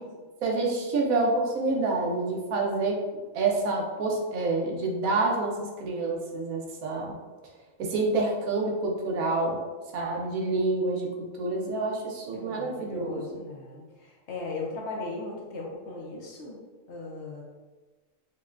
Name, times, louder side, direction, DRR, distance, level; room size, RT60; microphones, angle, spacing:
voice 1, 0.4-3.0 3.3-7.2 7.8-9.6 9.9-11.1 11.4-13.4, right 3 dB, 85° right, 0 dB, 1.1 m, -27 dB
voice 2, 12.3-16.6 16.9-17.4, left 3 dB, 60° left, -2 dB, 0.9 m, -38 dB
5.3 x 2.2 x 2.4 m, 1.3 s
omnidirectional pair, 1.4 m